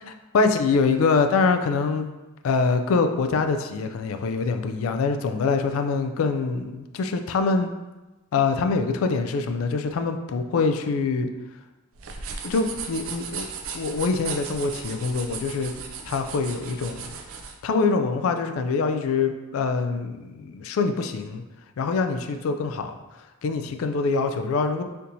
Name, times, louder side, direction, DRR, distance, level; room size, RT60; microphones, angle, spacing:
voice 1, 0.3-2.1 2.4-7.7 8.3-11.3 12.4-13.5 13.7-15.7 16.1-17.2 17.6-21.4 21.8-23.0 23.4-24.8, left 4 dB, 80° left, 7 dB, 0.3 m, -24 dB
sound 1, 11.9-17.6, right 5 dB, 85° right, 0.4 m, -36 dB
4.3 x 2.7 x 2.6 m, 1.1 s
head